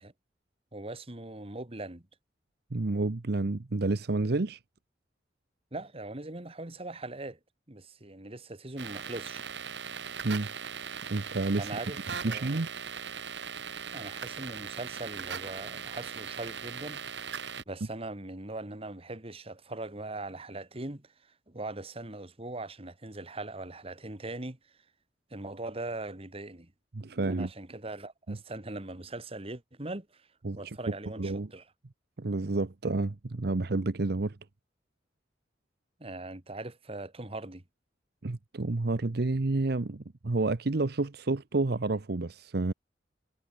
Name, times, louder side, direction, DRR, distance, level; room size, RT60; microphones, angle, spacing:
voice 1, 0.7-2.1 5.7-7.4 7.7-9.4 11.6-12.6 13.9-17.4 17.7-24.6 25.3-26.7 27.3-30.3 30.6-31.6 36.0-37.6, right 2 dB, 35° right, 2.0 m, -40 dB
voice 2, 2.7-4.6 10.2-10.5 11.1-11.7 12.2-12.7 26.9-27.5 28.3-28.4 30.4-30.8 31.2-31.5 32.2-34.4 38.2-42.7, right 2 dB, 60° right, 0.8 m, -30 dB
sound 1, 8.8-17.6, right 6 dB, 80° right, 3.1 m, -39 dB
head